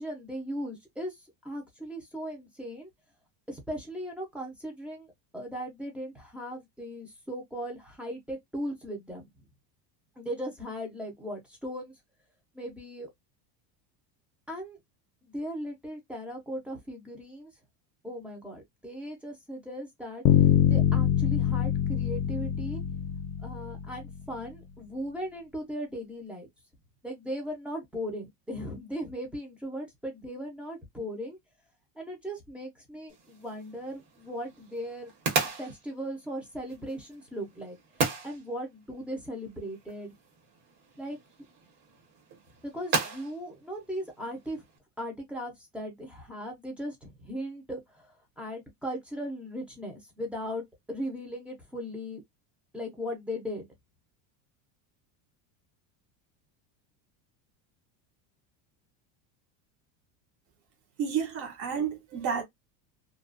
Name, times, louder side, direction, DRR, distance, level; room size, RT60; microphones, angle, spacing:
voice 1, 0.0-2.9 3.5-9.2 10.2-12.0 12.5-13.1 14.5-14.8 15.2-17.5 18.0-20.2 20.7-22.8 23.4-26.5 27.0-31.4 32.0-35.1 35.6-40.1 41.0-41.2 42.6-44.6 45.0-52.2 52.7-53.7, equal, 5° right, 0.6 m, -38 dB
Bass guitar, 20.3-24.3, left 10 dB, 60° left, 0.6 m, -24 dB
sound 1, 33.1-44.8, right 4 dB, 55° right, 1.4 m, -37 dB
voice 2, 61.0-62.4, right 7 dB, 30° right, 0.8 m, -30 dB
2.4 x 2.4 x 2.4 m
cardioid pair, 160°, 45 cm